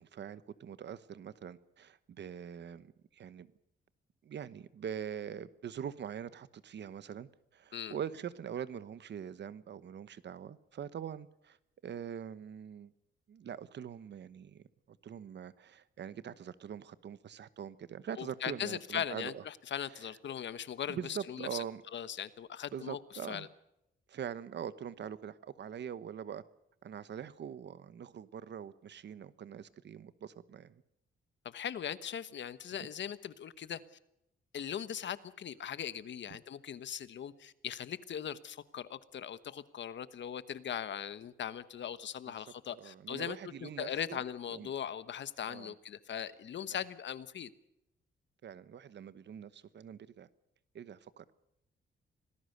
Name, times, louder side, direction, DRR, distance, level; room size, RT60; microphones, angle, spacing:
voice 1, 0.0-3.5 4.2-11.6 11.8-12.9 13.3-19.4 19.9-20.1 20.9-21.8 22.7-23.5 24.1-26.4 26.8-30.8 36.3-36.4 42.3-44.2 44.5-44.7 45.5-45.7 46.7-46.8 48.4-50.3 50.7-51.3, right 8 dB, 60° right, 15 dB, 1.1 m, -43 dB
voice 2, 18.2-21.6 21.9-23.0 23.3-23.5 31.4-33.8 34.5-47.5, left 9 dB, 65° left, 14 dB, 1.2 m, -40 dB
26.0 x 18.5 x 6.7 m, 0.83 s
wide cardioid pair, 135°, 21 cm